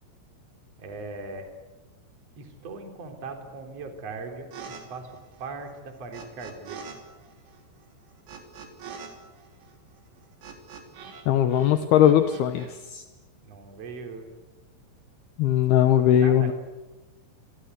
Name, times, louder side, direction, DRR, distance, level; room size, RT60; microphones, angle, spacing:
voice 1, 0.8-1.5 2.4-5.1 5.4-7.0 13.4-14.3 16.1-16.5, right 3 dB, 35° right, 4 dB, 4.0 m, -39 dB
sound 1, 4.5-4.8 5.1-7.0 7.2-11.2 11.5-12.7, right 6 dB, 60° right, 5.0 m, -44 dB
voice 2, 11.3-13.0 15.4-16.5, left 10 dB, 75° left, 9 dB, 2.4 m, -20 dB
27.5 x 25.0 x 8.2 m, 1.1 s
omnidirectional pair, 5.9 m